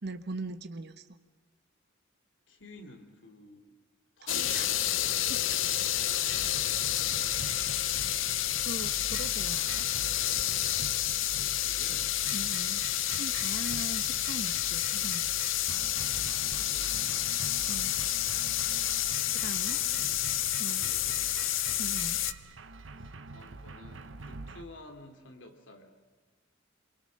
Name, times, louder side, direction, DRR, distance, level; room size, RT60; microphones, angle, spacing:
voice 1, 0.0-1.0 4.2-4.7 5.2-5.6 7.4-7.7 8.6-9.8 12.3-12.8 13.1-15.3 17.7-17.9 19.3-19.8 20.6-20.8 21.8-22.2, right 2 dB, 60° right, 9 dB, 1.1 m, -41 dB
voice 2, 2.5-3.8 4.2-4.9 11.4-12.2 16.4-17.3 19.7-20.2 20.6-21.5 23.0-25.9, left 2 dB, 70° left, 5 dB, 3.0 m, -52 dB
sound 1, 4.3-22.3, left 13 dB, 85° left, 0.8 m, -30 dB
sound 2, 6.3-24.6, right 3 dB, 80° right, 1.1 m, -45 dB
27.0 x 23.5 x 6.6 m, 1.4 s
head